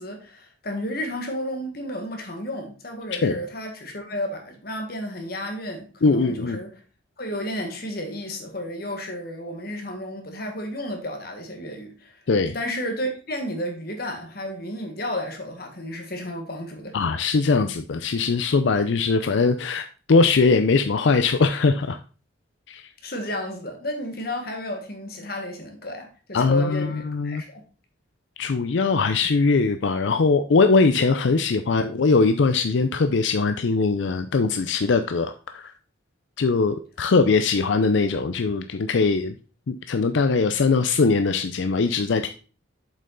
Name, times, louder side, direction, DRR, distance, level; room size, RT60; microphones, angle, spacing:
voice 1, 0.0-6.7 7.2-12.2 12.5-17.0 23.0-27.6, left 1 dB, 50° left, 1.6 m, -32 dB
voice 2, 6.0-6.6 12.3-12.5 16.9-22.0 22.7-22.8 26.3-27.4 28.4-35.7 36.4-39.3 39.7-42.3, left 4 dB, 70° left, 0.5 m, -21 dB
7.3 x 5.4 x 3.9 m
head